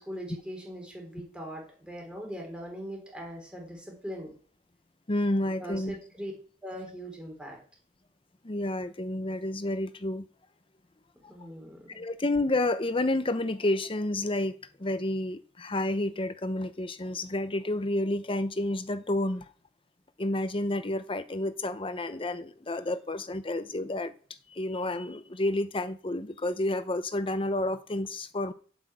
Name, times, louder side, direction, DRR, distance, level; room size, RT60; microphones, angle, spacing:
voice 1, 0.0-4.3 5.6-6.3 6.6-7.6 11.3-12.0, equal, 5° right, 3.9 m, -40 dB
voice 2, 5.1-6.0 8.4-10.2 11.2-11.3 11.9-19.4 20.2-24.1 24.5-28.5, left 1 dB, 30° left, 0.8 m, -30 dB
8.2 x 6.2 x 8.1 m
head